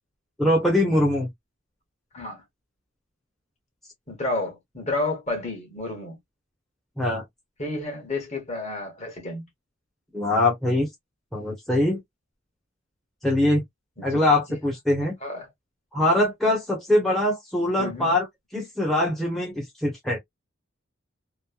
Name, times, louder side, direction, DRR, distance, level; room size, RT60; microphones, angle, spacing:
voice 1, 0.4-1.3 7.0-7.2 10.1-10.9 11.3-12.0 13.2-13.6 14.0-15.1 15.9-18.3 18.5-20.2, left 1 dB, ahead, 0.8 m, -22 dB
voice 2, 4.1-6.2 7.6-9.5 14.0-14.2 14.5-14.6 15.2-15.5 17.8-18.1, left 2 dB, 35° left, 1.2 m, -31 dB
3.1 x 2.1 x 2.2 m
head